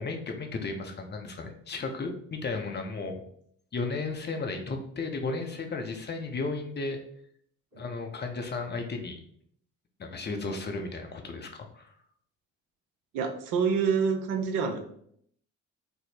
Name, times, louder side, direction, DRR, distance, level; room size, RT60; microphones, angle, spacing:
voice 1, 0.0-3.2 3.7-7.0 7.7-9.2 10.0-11.9, left 3 dB, 25° left, 4 dB, 0.7 m, -34 dB
voice 2, 13.1-14.8, right 6 dB, 55° right, 5 dB, 0.6 m, -27 dB
3.5 x 2.0 x 4.1 m, 0.67 s
hypercardioid pair, 50°, 38 cm